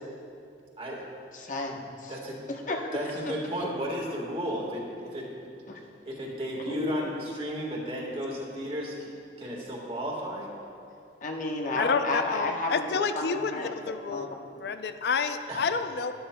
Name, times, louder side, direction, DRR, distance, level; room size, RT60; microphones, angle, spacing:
voice 1, 1.3-2.1 2.5-3.0 3.3-3.4 5.7-5.8 6.5-6.9 11.2-12.9 13.1-14.4, left 2 dB, 45° left, 2 dB, 0.9 m, -32 dB
voice 2, 2.9-5.3 6.0-9.1 9.4-10.5 15.5-15.7, equal, 30° right, -2 dB, 1.6 m, -33 dB
voice 3, 11.8-14.3 14.6-16.1, left 5 dB, 65° left, 9 dB, 0.4 m, -29 dB
12.5 x 12.0 x 2.2 m, 2.5 s
head